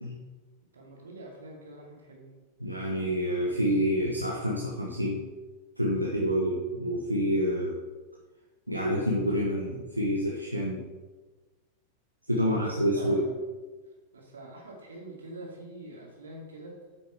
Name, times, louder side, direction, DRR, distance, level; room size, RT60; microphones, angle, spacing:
voice 1, 0.7-2.3 12.5-13.4 14.1-16.7, right 2 dB, 70° right, -1 dB, 2.4 m, -44 dB
voice 2, 2.6-5.2 5.8-7.8 8.7-10.8 12.3-13.2, equal, 90° right, -3 dB, 1.1 m, -28 dB
8.8 x 6.0 x 4.7 m, 1.3 s
figure-of-eight pair, 90°, 0 cm